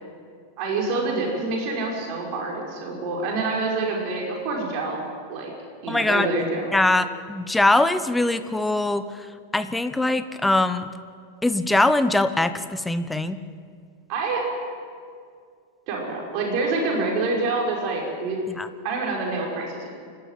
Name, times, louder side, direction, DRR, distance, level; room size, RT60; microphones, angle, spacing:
voice 1, 0.6-5.0 5.3-5.5 5.8-6.6 14.1-14.5 15.9-18.4 18.8-19.9, right 3 dB, 45° right, -1 dB, 5.7 m, -26 dB
voice 2, 5.9-6.3 6.7-9.3 9.5-10.9 11.4-13.4 18.5-18.7, left 2 dB, 5° left, 11 dB, 1.0 m, -22 dB
28.0 x 13.0 x 9.3 m, 2.2 s
figure-of-eight pair, 90°, 0 cm